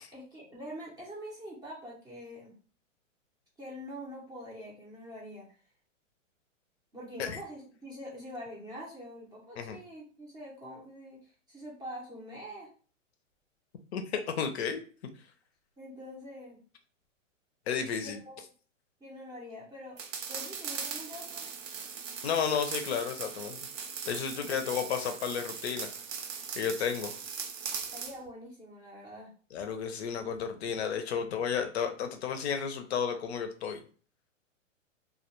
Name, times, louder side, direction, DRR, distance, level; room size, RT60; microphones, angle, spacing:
voice 1, 0.1-2.5 3.6-5.5 6.9-12.7 15.8-16.6 18.0-18.4 19.0-20.0 20.3-21.5 24.3-24.5 27.9-29.3, equal, 10° right, -5 dB, 0.5 m, -45 dB
voice 2, 13.9-14.8 17.7-18.2 22.2-23.6 24.1-25.9 26.6-27.1 29.5-33.8, left 7 dB, 55° left, 6 dB, 0.5 m, -32 dB
sound 1, 20.0-28.2, right 6 dB, 70° right, 0.7 m, -39 dB
2.1 x 2.1 x 2.9 m, 0.41 s
hypercardioid pair, 135°, 39 cm